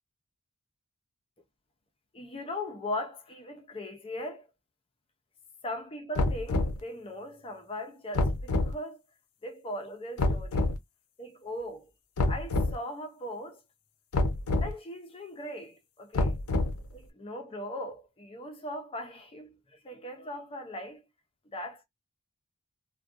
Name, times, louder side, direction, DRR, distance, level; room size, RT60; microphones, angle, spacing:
voice 1, 2.1-4.5 5.6-9.0 9.4-10.7 11.2-11.9 12.3-13.6 14.6-16.4 16.9-21.0 21.5-21.9, left 1 dB, 25° left, 0.5 m, -39 dB
sound 1, 6.1-6.8 8.1-8.7 10.2-10.8 12.2-12.7 14.1-14.7 16.1-16.9, left 2 dB, 75° left, 0.5 m, -27 dB
2.5 x 2.2 x 2.4 m
head